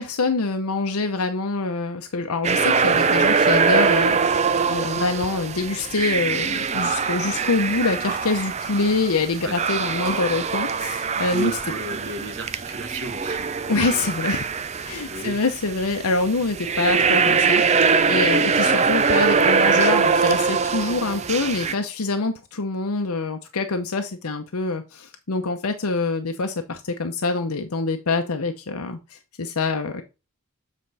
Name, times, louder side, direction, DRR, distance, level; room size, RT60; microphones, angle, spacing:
voice 1, 0.0-11.5 13.7-14.4 14.8-30.0, left 3 dB, 85° left, 6 dB, 0.8 m, -25 dB
sound 1, 2.4-21.7, right 5 dB, 30° right, 0.5 m, -22 dB
voice 2, 11.3-13.5 15.1-15.4, right 3 dB, 55° right, 5 dB, 1.7 m, -32 dB
7.5 x 4.5 x 4.1 m, 0.27 s
head